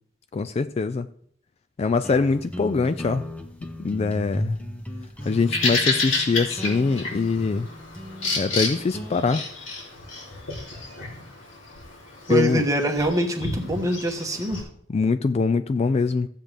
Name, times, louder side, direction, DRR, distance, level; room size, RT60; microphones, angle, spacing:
voice 1, 0.3-1.1 1.8-3.3 3.8-4.6 5.3-7.7 8.4-9.4 12.3-12.6 14.9-16.3, left 4 dB, 30° left, 0.3 m, -23 dB
sound 1, 2.0-9.2, equal, 5° left, 0.8 m, -37 dB
Bird vocalization bird call bird song, 5.2-14.6, left 3 dB, 85° left, 2.9 m, -30 dB
voice 2, 12.3-14.6, right 1 dB, 15° right, 1.2 m, -24 dB
15.0 x 7.4 x 3.4 m
head